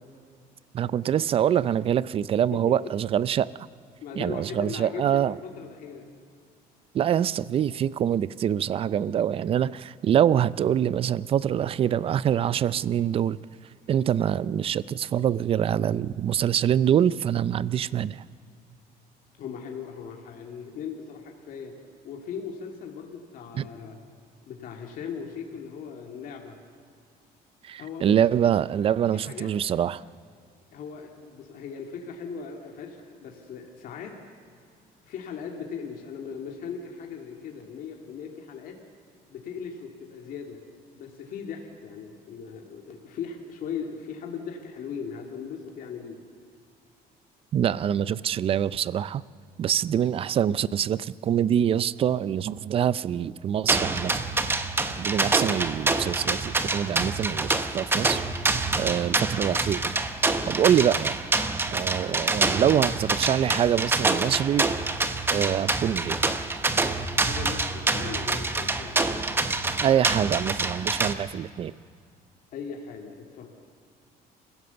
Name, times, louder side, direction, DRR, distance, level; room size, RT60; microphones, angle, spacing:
voice 1, 0.7-3.5 4.2-5.4 6.9-13.4 13.9-18.2 23.6-23.7 27.6-30.0 47.5-49.2 49.6-54.1 55.0-58.2 58.8-60.0 60.5-61.2 61.7-64.8 65.3-66.2 69.8-71.7, right 9 dB, 35° right, 19 dB, 0.4 m, -25 dB
voice 2, 4.0-6.0 19.4-21.7 22.0-24.0 24.4-26.6 27.8-28.2 29.1-29.5 30.7-34.1 35.0-38.8 39.3-40.6 40.9-46.2 67.2-69.0 72.5-73.5, left 6 dB, 60° left, 1 dB, 2.4 m, -38 dB
sound 1, 53.7-71.1, right 3 dB, 15° right, 0.9 m, -26 dB
29.0 x 16.0 x 6.9 m, 2.3 s
cardioid pair, 160°, 16 cm